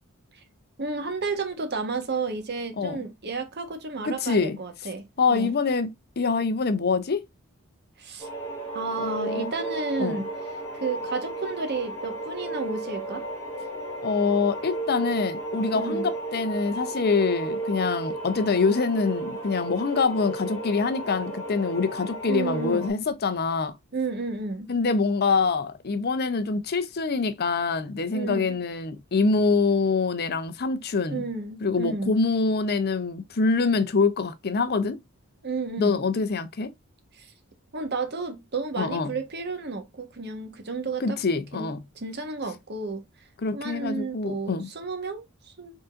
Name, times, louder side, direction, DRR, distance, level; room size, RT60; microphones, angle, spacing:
voice 1, 0.8-5.6 8.0-8.3 8.7-10.3 10.7-13.3 15.7-16.0 22.3-22.9 23.9-24.7 28.1-28.6 31.1-32.2 35.4-36.0 37.1-37.3 37.7-41.2 41.5-41.7 41.9-43.0 43.5-45.8, right 4 dB, 50° right, 1.2 m, -32 dB
voice 2, 4.0-4.6 5.2-7.3 9.0-9.5 10.0-10.2 14.0-23.7 24.7-31.2 31.6-35.0 35.8-36.7 38.8-39.1 41.0-41.8 43.4-44.7, left 4 dB, 50° left, 0.6 m, -25 dB
sound 1, 8.2-22.9, right 2 dB, 10° left, 2.4 m, -34 dB
5.3 x 3.8 x 2.4 m
head